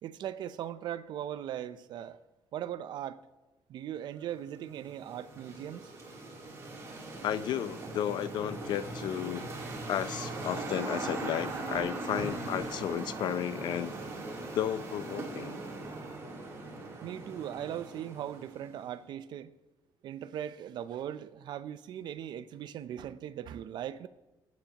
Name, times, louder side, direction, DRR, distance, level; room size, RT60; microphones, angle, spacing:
voice 1, 0.0-2.2 2.5-3.2 3.7-5.9 17.0-19.5 20.0-24.1, right 10 dB, 65° right, 0.5 m, -39 dB
sound 1, 4.3-18.8, right 2 dB, 35° right, 3.1 m, -40 dB
voice 2, 7.2-9.5 9.9-13.9 14.5-15.6, left 10 dB, 65° left, 0.6 m, -33 dB
21.5 x 9.3 x 2.9 m
cardioid pair, 145°, 8 cm